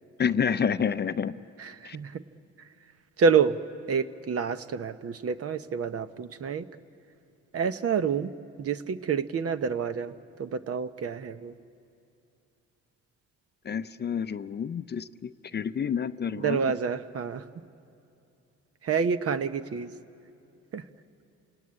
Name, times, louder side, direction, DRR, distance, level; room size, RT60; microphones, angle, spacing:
voice 1, 0.2-1.3 1.8-2.0 13.6-16.6, left 7 dB, 35° left, 12 dB, 0.5 m, -29 dB
voice 2, 1.6-2.2 2.6-2.7 3.2-3.6 3.9-6.7 7.5-8.3 8.6-11.5 16.3-17.6 18.8-19.9 20.7-20.8, right 6 dB, 50° right, 12 dB, 0.9 m, -28 dB
29.0 x 18.0 x 9.7 m, 2.6 s
cardioid pair, 90°, 30 cm